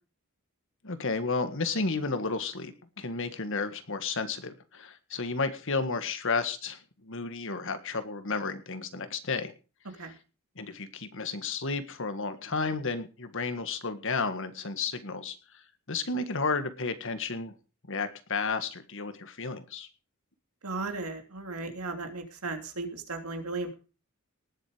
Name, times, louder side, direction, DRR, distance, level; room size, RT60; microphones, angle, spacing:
voice 1, 0.8-9.5 10.6-15.4 15.9-17.5 17.9-19.9, left 4 dB, 60° left, 10 dB, 1.7 m, -32 dB
voice 2, 20.6-23.8, right 3 dB, 85° right, 5 dB, 2.9 m, -36 dB
19.0 x 7.7 x 5.1 m, 0.34 s
head